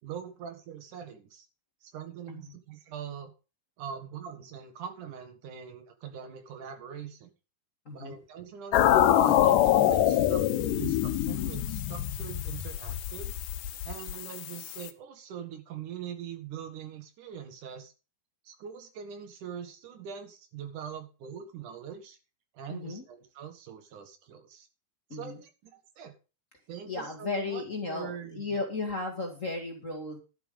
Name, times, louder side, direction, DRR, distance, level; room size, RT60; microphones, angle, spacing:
voice 1, 0.0-1.5 1.8-3.3 3.8-7.3 7.9-10.4 10.8-13.4 13.8-17.9 18.4-22.2 22.5-24.7 25.1-26.1 26.7-28.6, right 8 dB, 75° right, 6 dB, 3.1 m, -42 dB
voice 2, 7.9-8.2 22.7-23.0 25.1-25.4 26.8-30.2, left 3 dB, 30° left, 1 dB, 2.0 m, -35 dB
sound 1, 8.7-14.9, left 12 dB, 90° left, 2.5 m, -25 dB
12.0 x 7.6 x 5.3 m, 0.33 s
omnidirectional pair, 3.6 m